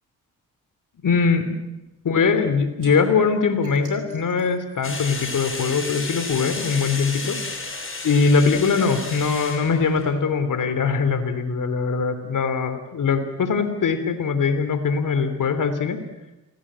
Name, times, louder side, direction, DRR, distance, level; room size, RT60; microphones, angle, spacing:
voice 1, 1.0-1.6 2.0-7.4 8.0-16.0, left 5 dB, 60° left, 10 dB, 3.4 m, -22 dB
sound 1, 2.8-2.9 3.6-5.8, right 2 dB, 60° right, 6.9 m, -43 dB
sound 2, 4.8-10.1, left 3 dB, 35° left, 7.1 m, -32 dB
28.0 x 18.0 x 8.9 m, 1.0 s
supercardioid pair, 55°, 35 cm